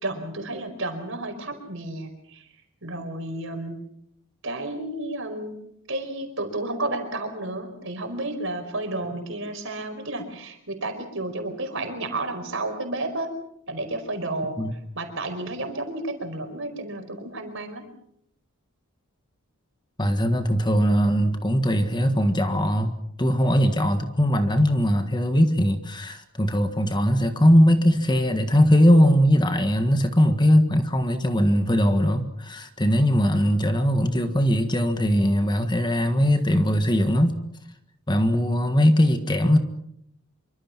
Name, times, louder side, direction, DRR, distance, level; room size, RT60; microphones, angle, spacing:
voice 1, 0.0-2.5 2.8-3.8 4.4-5.6 5.9-13.3 13.7-17.9, right 2 dB, 55° right, 6 dB, 4.9 m, -31 dB
voice 2, 20.0-37.4 38.1-39.6, equal, 20° left, 8 dB, 1.6 m, -20 dB
26.5 x 24.5 x 6.0 m, 0.74 s
head